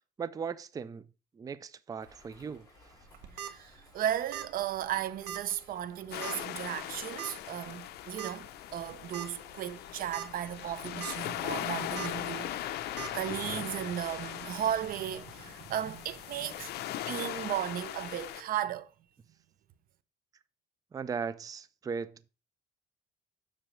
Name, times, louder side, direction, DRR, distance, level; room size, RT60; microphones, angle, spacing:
voice 1, 0.2-1.1 1.3-2.9 20.9-22.3, right 6 dB, 20° right, 0.4 m, -38 dB
sound 1, 2.0-18.4, left 3 dB, 20° left, 4.8 m, -57 dB
sound 2, 3.1-3.5 4.3-4.6 4.8-4.9 5.3-5.4 6.2-6.5 7.2-7.3 8.2-8.3 8.8-8.9 9.1-9.3 9.9-10.3 10.7-11.1 12.0-12.1 13.0-13.1, right 11 dB, 90° right, 0.9 m, -39 dB
voice 2, 3.4-16.7 17.0-18.9, right 11 dB, 60° right, 0.6 m, -35 dB
sound 3, 6.1-18.4, left 13 dB, 75° left, 0.6 m, -39 dB
7.5 x 6.2 x 3.2 m
cardioid pair, 110°, 17 cm